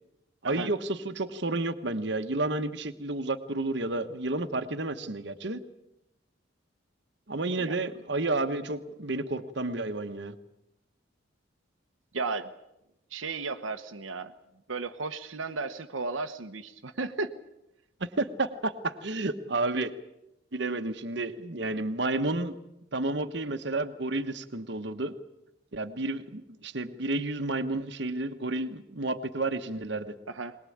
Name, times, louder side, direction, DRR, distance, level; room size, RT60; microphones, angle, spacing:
voice 1, 0.4-5.6 7.3-10.4 18.0-19.9 20.5-22.6 22.9-25.1 25.7-30.1, right 2 dB, 60° right, 9 dB, 1.2 m, -31 dB
voice 2, 12.1-12.5 13.1-14.3 14.7-17.3 30.3-30.6, right 3 dB, 85° right, 6 dB, 1.1 m, -34 dB
22.0 x 20.5 x 8.7 m, 0.88 s
head